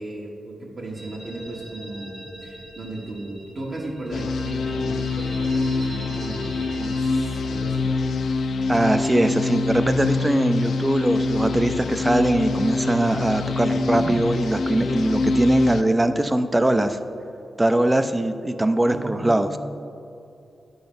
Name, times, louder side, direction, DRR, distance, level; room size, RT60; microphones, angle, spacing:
voice 1, 0.0-7.8 13.8-14.1 18.9-19.6, right 1 dB, 40° right, -4 dB, 1.3 m, -35 dB
sound 1, 0.9-7.8, right 1 dB, 65° right, 1.5 m, -41 dB
sound 2, 4.1-15.8, left 3 dB, 75° left, 0.4 m, -25 dB
voice 2, 8.7-17.0 17.6-19.5, right 1 dB, 15° right, 10 dB, 0.4 m, -21 dB
10.0 x 3.9 x 7.0 m, 2.6 s
wide cardioid pair, 105°, 0 cm